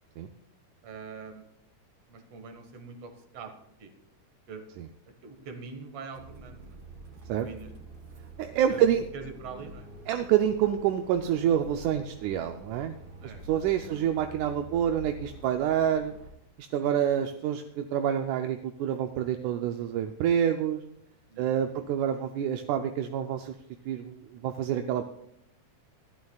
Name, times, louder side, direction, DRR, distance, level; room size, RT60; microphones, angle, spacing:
voice 1, 0.8-1.4 2.1-3.5 3.8-3.9 4.5-4.6 5.2-6.8 7.3-7.7 8.7-9.9 13.2-13.4 13.8-14.1 16.8-17.2 21.3-21.9, right 4 dB, 55° right, 6 dB, 2.5 m, -44 dB
sound 1, 6.1-16.3, right 1 dB, 40° right, 2.5 m, -47 dB
voice 2, 8.4-9.0 10.1-13.0 13.2-16.1 16.6-20.8 21.4-23.5 23.9-25.1, right 9 dB, 80° right, 6 dB, 2.0 m, -27 dB
25.0 x 13.0 x 2.4 m, 0.77 s
omnidirectional pair, 3.6 m